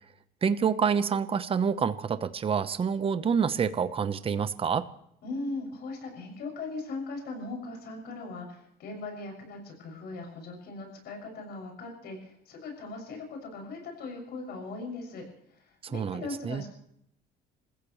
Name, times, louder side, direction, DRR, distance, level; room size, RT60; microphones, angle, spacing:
voice 1, 0.4-4.9 15.9-16.6, right 6 dB, 35° right, 12 dB, 1.0 m, -27 dB
voice 2, 5.2-15.2 15.5-16.7, left 3 dB, 70° left, 1 dB, 6.6 m, -39 dB
28.0 x 15.0 x 3.2 m, 0.71 s
cardioid pair, 110°, 17 cm